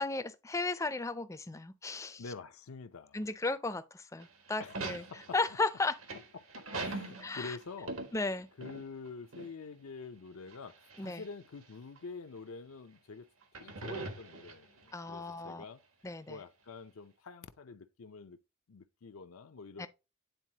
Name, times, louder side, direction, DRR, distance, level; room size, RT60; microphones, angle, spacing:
voice 1, 0.0-2.2 3.1-5.0 5.3-6.0 7.2-7.6 8.1-8.5 11.0-11.2 14.9-15.6 16.0-16.4 19.8-19.9, left 3 dB, 15° left, 0.4 m, -35 dB
voice 2, 2.2-3.3 4.6-5.4 6.5-8.0 8.6-15.8 16.3-18.4 18.7-19.9, left 4 dB, 80° left, 0.6 m, -47 dB
sound 1, 4.2-9.1 9.3-9.5 10.5-11.3 12.0-12.1 13.4-14.9, right 3 dB, 75° right, 1.4 m, -42 dB
9.1 x 4.0 x 2.9 m
head